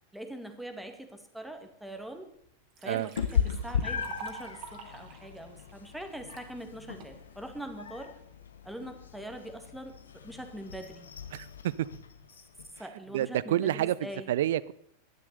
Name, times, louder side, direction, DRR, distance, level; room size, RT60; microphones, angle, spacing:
voice 1, 0.1-2.3 2.8-8.1 8.6-11.1 12.8-14.3, right 1 dB, ahead, 2.0 m, -43 dB
Liquid, 2.0-2.1 2.4-6.5 7.0-7.5, right 7 dB, 40° right, 2.6 m, -48 dB
Meow, 3.2-12.8, left 7 dB, 70° left, 1.1 m, -37 dB
voice 2, 11.3-11.9 13.1-14.7, right 12 dB, 55° right, 0.6 m, -29 dB
11.5 x 11.5 x 6.7 m
figure-of-eight pair, 90°, 0 cm